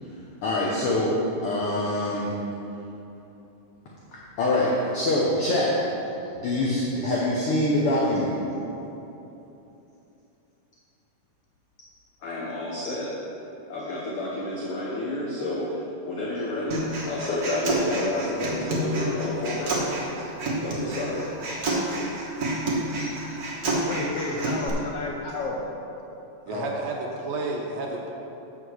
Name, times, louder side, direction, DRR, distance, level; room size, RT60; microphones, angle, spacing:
voice 1, 0.0-2.4 4.1-8.4 12.2-13.2 13.7-19.9 20.6-21.3 23.0-23.1, left 1 dB, 70° left, -5 dB, 1.4 m, -27 dB
Human voice, 16.7-24.7, right 1 dB, 50° right, 1.1 m, -29 dB
voice 2, 23.7-25.6 26.5-26.7, left 3 dB, 85° left, 0 dB, 1.3 m, -32 dB
voice 3, 26.5-28.1, right 2 dB, 70° right, -1 dB, 1.8 m, -31 dB
8.0 x 5.9 x 6.3 m, 3.0 s
omnidirectional pair, 3.6 m